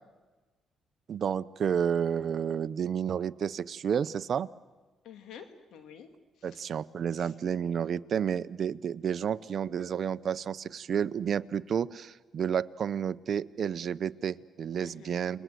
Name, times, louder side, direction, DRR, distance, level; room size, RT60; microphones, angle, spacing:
voice 1, 1.1-4.5 6.4-15.4, right 8 dB, 55° right, 14 dB, 0.8 m, -31 dB
voice 2, 5.0-6.1 6.4-6.8 7.1-7.3 14.8-15.2, left 7 dB, 80° left, 7 dB, 2.5 m, -50 dB
29.5 x 21.5 x 7.8 m, 1.3 s
cardioid pair, 90°, 0 cm